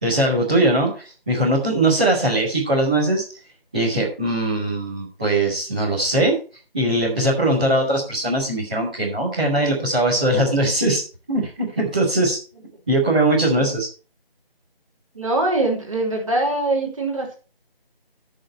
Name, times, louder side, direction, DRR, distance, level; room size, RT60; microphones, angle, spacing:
voice 1, 0.0-3.2 3.7-6.4 6.7-11.0 11.3-12.4 12.9-13.9, right 1 dB, 10° right, -12 dB, 1.8 m, -20 dB
voice 2, 15.1-17.4, right 2 dB, 35° right, -1 dB, 3.1 m, -23 dB
14.5 x 6.5 x 4.5 m, 0.34 s
figure-of-eight pair, 170°, 30 cm